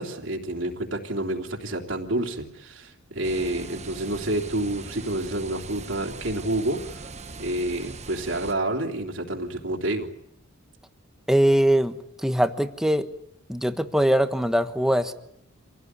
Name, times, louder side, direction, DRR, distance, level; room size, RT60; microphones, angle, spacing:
voice 1, 0.0-7.1 7.4-10.1, right 1 dB, 65° right, 1 dB, 3.2 m, -29 dB
sound 1, 3.2-8.5, right 3 dB, 35° right, 1.2 m, -40 dB
voice 2, 11.3-13.1 13.5-15.1, equal, ahead, 8 dB, 1.3 m, -22 dB
26.5 x 17.0 x 9.6 m, 0.77 s
head